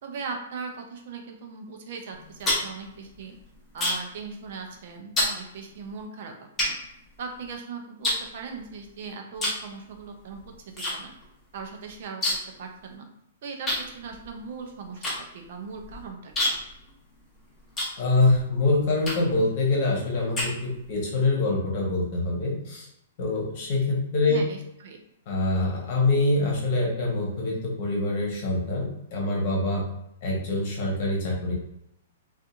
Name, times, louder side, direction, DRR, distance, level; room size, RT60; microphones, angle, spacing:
voice 1, 0.0-3.3 3.7-6.3 6.6-6.7 7.2-10.4 10.9-11.1 11.5-12.2 12.6-13.1 13.4-15.0 15.3-16.5 24.3-25.0, right 5 dB, 60° right, 3 dB, 0.5 m, -39 dB
sound 1, 2.1-4.2 4.5-4.8 5.2-5.4 6.0-6.1 6.6-7.5 8.0-8.9 9.3-9.7 10.0-10.9 11.2-11.3 11.6-12.6 12.9-13.0 13.7-18.4 19.0-19.4 19.9-21.0, left 1 dB, 15° left, 0.9 m, -29 dB
voice 2, 18.0-22.9 23.2-24.4 25.3-29.9 30.2-31.5, left 2 dB, 50° left, -3 dB, 1.0 m, -25 dB
2.7 x 2.4 x 2.4 m, 0.78 s
hypercardioid pair, 140°, 0 cm